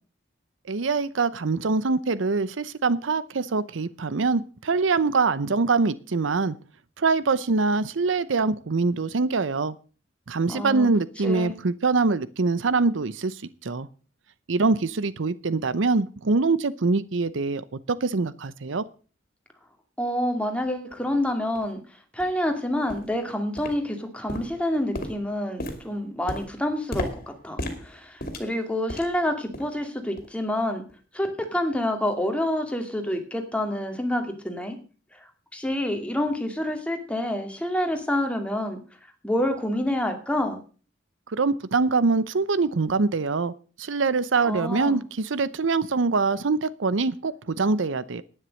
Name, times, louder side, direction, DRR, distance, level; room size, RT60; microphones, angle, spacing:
voice 1, 0.7-6.6 7.0-9.7 10.3-13.9 14.5-18.8 41.3-48.2, right 4 dB, 80° right, 17 dB, 0.7 m, -24 dB
voice 2, 10.5-10.9 11.2-11.5 20.0-21.8 22.1-27.1 27.4-30.8 31.1-34.8 35.2-38.8 39.2-40.6 44.4-45.0, left 1 dB, 5° left, 4 dB, 2.3 m, -27 dB
sound 1, 20.9-21.0 21.6-21.7 22.2-22.4 22.9-23.2 23.6-24.0 24.3-29.2 29.5-29.8 30.2-30.4 30.9-31.0, left 1 dB, 50° left, 2.6 m, -36 dB
11.0 x 9.8 x 6.4 m, 0.38 s
head